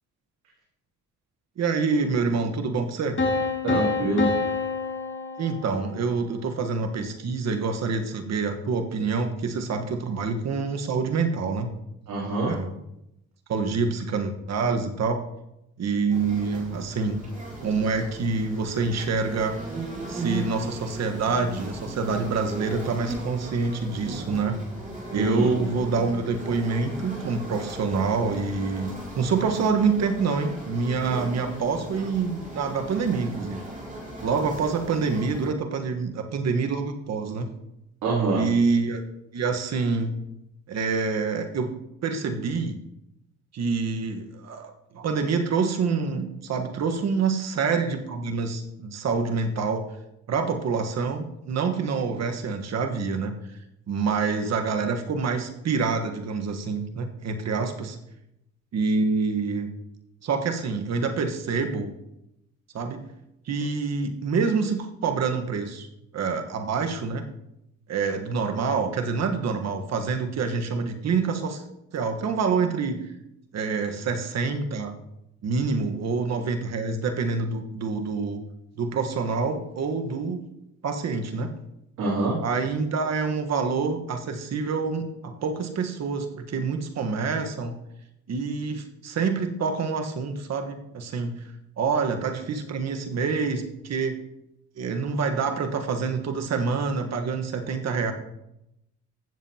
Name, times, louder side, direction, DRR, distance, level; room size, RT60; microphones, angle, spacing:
voice 1, 1.6-3.2 5.4-11.7 12.5-12.7 13.5-15.2 15.8-17.2 17.6-19.6 20.1-24.6 25.1-33.6 34.2-37.6 38.3-39.0 39.3-40.1 40.7-41.7 42.0-42.8 43.5-49.8 50.3-53.3 53.9-58.0 58.7-59.7 60.2-61.9 62.7-63.0 63.5-65.9 66.1-67.3 67.9-71.6 71.9-73.1 73.5-74.9 75.4-78.4 78.8-80.4 80.8-81.5 82.4-87.8 88.3-91.4 91.8-94.2 94.8-98.1, right 4 dB, 60° right, 5 dB, 1.4 m, -26 dB
sound 1, 3.2-6.1, left 4 dB, 40° left, 2.0 m, -27 dB
voice 2, 3.6-4.3 12.1-12.5 25.1-25.5 38.0-38.4 82.0-82.4, right 2 dB, 80° right, -6 dB, 3.0 m, -25 dB
sound 2, 16.1-35.5, right 1 dB, 25° right, 3.7 m, -37 dB
15.5 x 7.5 x 2.9 m, 0.84 s
cardioid pair, 90°, 30 cm